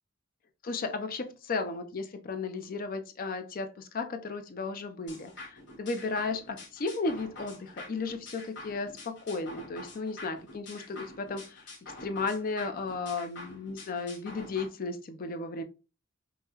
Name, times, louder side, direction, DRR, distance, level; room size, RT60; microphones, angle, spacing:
voice 1, 0.6-15.6, left 3 dB, 45° left, 0.5 m, -34 dB
sound 1, 5.1-14.7, left 2 dB, 60° left, 1.0 m, -47 dB
5.4 x 2.2 x 2.8 m
head